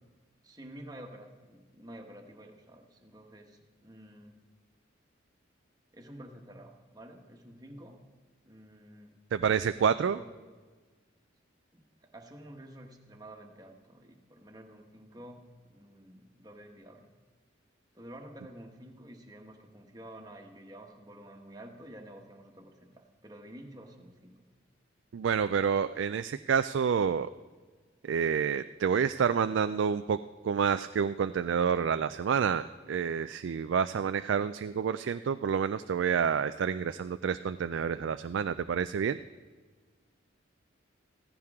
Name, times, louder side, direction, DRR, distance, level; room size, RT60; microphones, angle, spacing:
voice 1, 0.4-4.4 5.9-8.0 8.4-9.1 9.9-10.3 11.7-17.0 17.9-24.5, right 1 dB, 20° right, 3 dB, 1.3 m, -50 dB
voice 2, 9.3-10.2 25.1-27.3 28.0-30.2 30.4-39.2, right 7 dB, 70° right, 11 dB, 0.3 m, -28 dB
15.5 x 15.0 x 3.6 m, 1.4 s
head